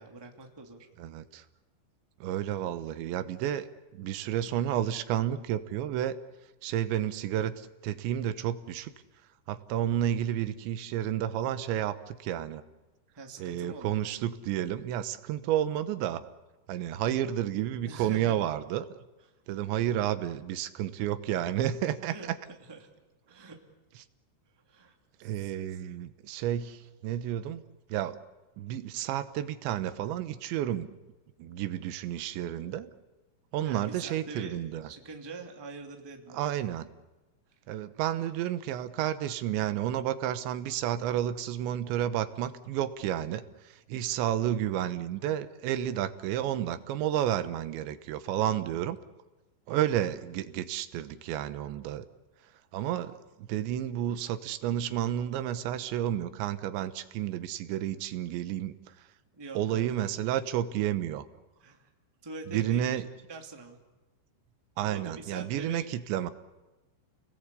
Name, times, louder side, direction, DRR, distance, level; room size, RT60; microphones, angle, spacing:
voice 1, 0.0-0.9 13.1-14.0 17.8-18.4 22.1-22.9 23.3-23.6 24.7-24.9 25.4-25.5 33.6-36.4 59.3-59.9 61.6-61.9 62.2-63.0 63.3-63.8 64.8-65.9, right 3 dB, 10° right, 3 dB, 1.2 m, -44 dB
voice 2, 1.0-1.4 2.2-3.7 3.9-6.2 6.6-8.9 9.5-12.6 13.4-16.2 16.7-18.9 19.5-22.2 25.2-27.6 27.9-28.2 28.6-30.9 31.4-32.9 33.5-34.9 36.3-36.9 37.7-49.0 49.7-52.1 52.7-53.2 53.5-58.7 59.6-61.3 62.5-63.1 64.8-66.3, right 11 dB, 75° right, 12 dB, 3.3 m, -31 dB
29.5 x 20.5 x 8.3 m, 1.1 s
omnidirectional pair, 5.5 m